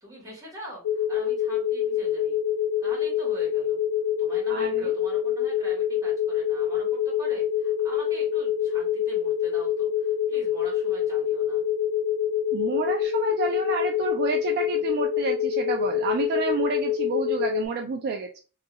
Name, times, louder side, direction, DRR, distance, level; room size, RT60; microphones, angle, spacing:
voice 1, 0.0-2.4 2.8-3.8 4.2-11.6, right 1 dB, 15° right, -4 dB, 1.4 m, -44 dB
sound 1, 0.8-17.6, left 9 dB, 65° left, 0.4 m, -26 dB
voice 2, 4.5-4.9 12.5-18.4, right 5 dB, 45° right, 2 dB, 0.3 m, -30 dB
2.6 x 2.4 x 2.9 m, 0.35 s
head